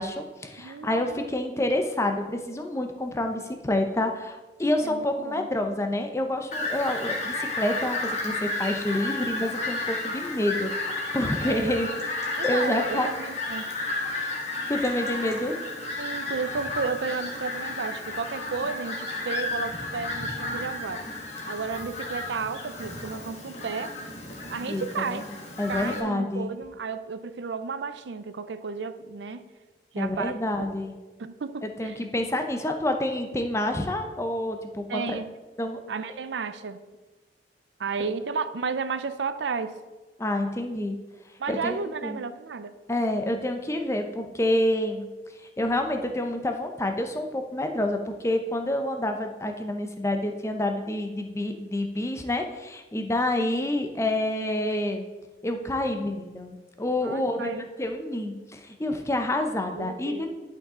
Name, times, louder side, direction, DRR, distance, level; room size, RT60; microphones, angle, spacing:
voice 1, 0.0-11.9 12.4-13.1 14.7-15.6 24.7-24.8 25.1-25.2 25.6-26.5 30.0-31.0 31.6-35.2 35.6-35.8 40.2-41.0 41.5-41.8 42.0-42.2 42.9-45.1 45.4-55.0 55.4-60.3, left 1 dB, 15° left, 5 dB, 0.6 m, -28 dB
voice 2, 0.6-1.3 4.8-5.5 11.4-12.1 12.4-13.7 16.0-21.1 21.5-24.0 24.5-25.2 25.7-29.5 29.9-30.4 31.2-32.0 34.9-35.3 35.9-36.8 37.8-39.8 41.4-42.7 57.0-57.6 59.7-60.3, right 5 dB, 85° right, 12 dB, 0.5 m, -33 dB
Fowl, 6.5-26.0, left 2 dB, 40° left, 1.6 m, -32 dB
11.0 x 5.7 x 3.7 m, 1.2 s
head